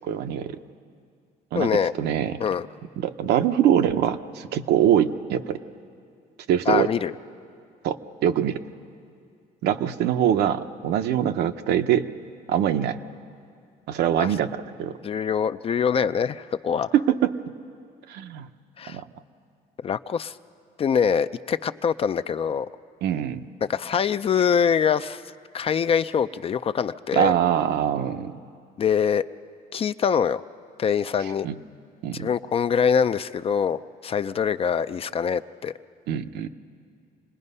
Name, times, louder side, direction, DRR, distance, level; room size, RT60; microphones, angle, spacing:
voice 1, 0.0-0.6 1.5-1.7 2.0-2.4 3.0-5.6 6.5-6.9 7.8-8.6 9.6-12.1 12.5-13.0 13.9-14.9 16.9-17.4 18.1-18.5 18.9-19.0 23.0-23.5 27.1-28.4 31.4-31.5 32.0-32.3 36.1-36.5, right 10 dB, 75° right, 8 dB, 0.8 m, -23 dB
voice 2, 1.5-1.9 2.4-2.7 6.7-7.1 14.2-14.3 15.0-16.9 18.8-19.0 19.8-20.3 20.8-22.7 23.7-25.2 25.5-27.3 28.8-29.2 29.7-30.4 30.8-31.5 32.1-35.7, left 7 dB, 35° left, 12 dB, 0.4 m, -24 dB
27.0 x 20.0 x 5.5 m, 2.3 s
cardioid pair, 110°, 17 cm